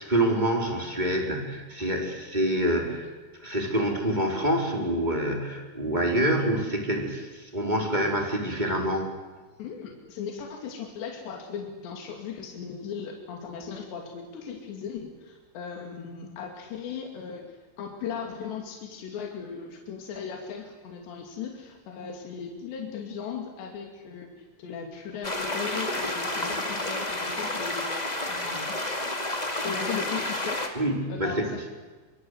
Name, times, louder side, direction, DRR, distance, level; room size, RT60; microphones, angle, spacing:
voice 1, 0.0-3.0 3.4-9.1 30.8-31.7, right 1 dB, 10° right, 2 dB, 3.7 m, -26 dB
voice 2, 9.6-17.5 17.8-24.3 24.6-28.0 28.3-28.8 29.6-30.7 31.1-31.7, left 6 dB, 80° left, 1 dB, 4.9 m, -37 dB
sound 1, 25.2-30.7, left 1 dB, 15° left, 1.6 m, -30 dB
28.0 x 25.5 x 8.2 m, 1.3 s
omnidirectional pair, 4.9 m